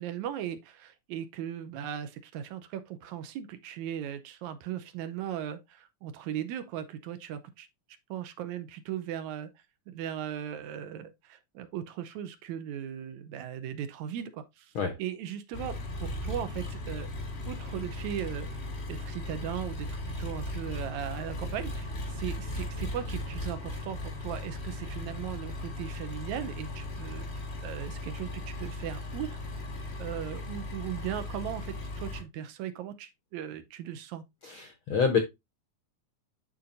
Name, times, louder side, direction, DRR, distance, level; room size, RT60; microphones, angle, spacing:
voice 1, 0.0-7.7 8.1-9.5 9.9-14.7 15.0-17.1 17.5-18.6 18.9-27.2 27.6-29.4 30.0-34.2, right 10 dB, 75° right, 2.0 m, -38 dB
Engine, 15.5-32.2, left 2 dB, 35° left, 1.0 m, -37 dB
voice 2, 34.4-35.2, left 6 dB, 70° left, 1.2 m, -27 dB
11.5 x 4.3 x 2.5 m
omnidirectional pair, 3.5 m